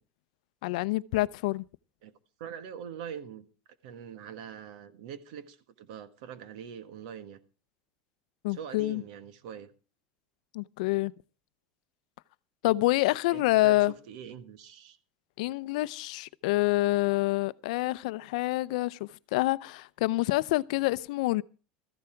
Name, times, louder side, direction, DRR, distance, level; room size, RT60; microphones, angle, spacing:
voice 1, 0.6-1.6 8.4-9.0 10.5-11.1 12.6-13.9 15.4-21.4, left 19 dB, 75° left, 0.5 m, -27 dB
voice 2, 2.4-3.4 3.8-7.4 8.5-9.7 13.3-15.0, right 8 dB, 70° right, 1.5 m, -43 dB
14.5 x 11.5 x 4.5 m
supercardioid pair, 155°, 4 cm